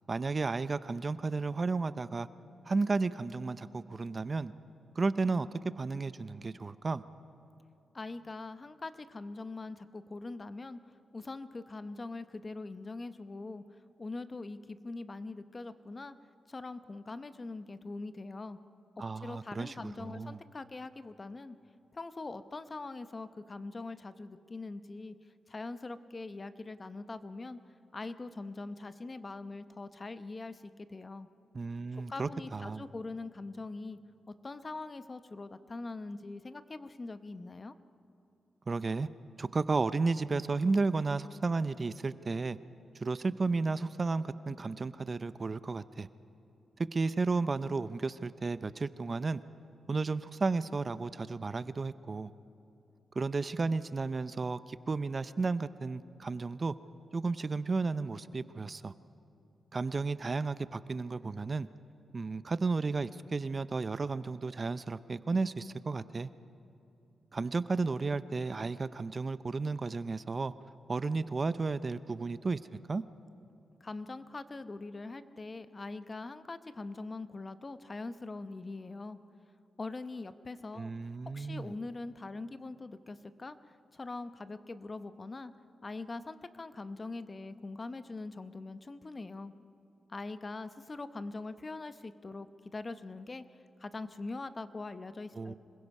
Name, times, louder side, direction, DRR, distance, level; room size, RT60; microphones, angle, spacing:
voice 1, 0.1-2.3 2.7-4.5 5.0-5.5 5.8-7.0 19.0-20.4 31.5-32.8 38.7-39.1 39.4-42.6 43.0-46.1 46.9-49.4 49.9-52.3 53.2-56.7 57.1-58.9 59.7-61.7 62.1-66.3 67.3-70.5 70.9-72.6 72.9-73.0 80.7-81.7 95.4-95.5, right 3 dB, 35° right, 15 dB, 0.5 m, -33 dB
voice 2, 7.9-10.8 11.1-13.6 14.0-16.2 16.5-18.6 19.0-21.6 21.9-25.1 25.5-27.6 27.9-30.6 30.9-31.3 31.9-34.0 34.4-37.7 73.8-79.2 79.8-80.9 81.3-83.6 83.9-85.5 85.8-89.5 90.1-92.5 92.7-93.4 93.8-95.5, left 3 dB, 30° left, 12 dB, 0.8 m, -42 dB
26.0 x 21.0 x 5.4 m, 2.9 s
cardioid pair, 100°, 0 cm